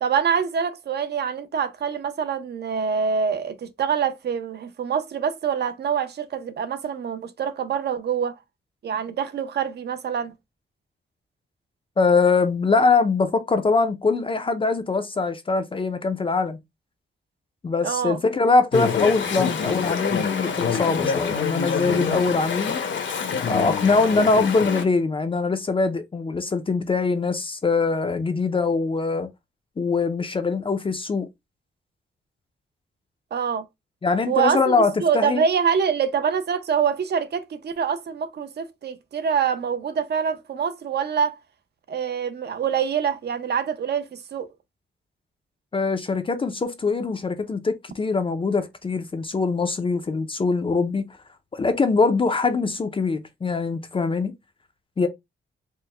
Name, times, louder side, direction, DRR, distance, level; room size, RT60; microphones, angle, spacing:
voice 1, 0.0-8.3 8.8-10.3 17.8-18.2 33.3-33.6 34.3-34.7 35.0-41.4 41.9-44.5, right 7 dB, 55° right, 0.6 m, -25 dB
voice 2, 12.0-16.6 17.6-22.8 23.4-29.3 29.8-31.3 34.0-35.4 45.7-51.1 51.5-54.3 55.0-55.1, left 4 dB, 25° left, 0.4 m, -22 dB
Chatter / Stream, 18.7-24.9, left 6 dB, 70° left, 0.8 m, -26 dB
4.5 x 2.1 x 3.2 m
wide cardioid pair, 170°, 20 cm